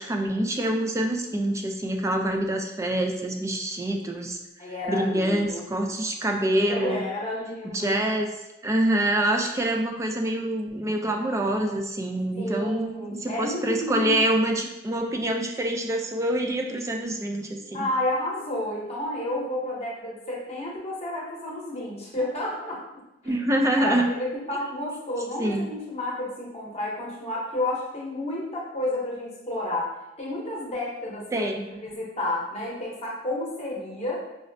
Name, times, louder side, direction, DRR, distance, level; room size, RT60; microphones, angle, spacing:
voice 1, 0.0-4.4 4.9-7.0 7.6-8.3 8.6-17.9 23.2-24.0 25.4-25.7 31.3-31.7, right 1 dB, 15° right, 3 dB, 0.3 m, -26 dB
voice 2, 4.6-5.7 6.7-8.0 12.4-14.2 17.7-22.8 23.2-23.4 23.8-29.9 30.2-34.2, left 1 dB, 35° left, -4 dB, 0.8 m, -31 dB
4.9 x 2.0 x 2.5 m, 0.95 s
head